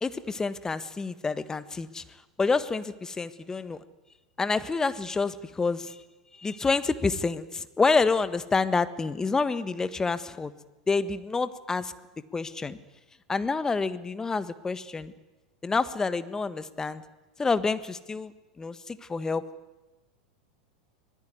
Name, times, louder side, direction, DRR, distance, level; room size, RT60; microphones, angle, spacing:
voice 1, 0.0-2.0 2.4-3.8 4.4-6.0 6.4-10.5 10.9-11.9 12.3-12.8 13.3-15.1 15.6-17.0 17.4-18.3 18.6-19.5, left 4 dB, 15° left, 13 dB, 1.5 m, -28 dB
24.5 x 21.0 x 9.7 m, 1.1 s
figure-of-eight pair, 90°, 4 cm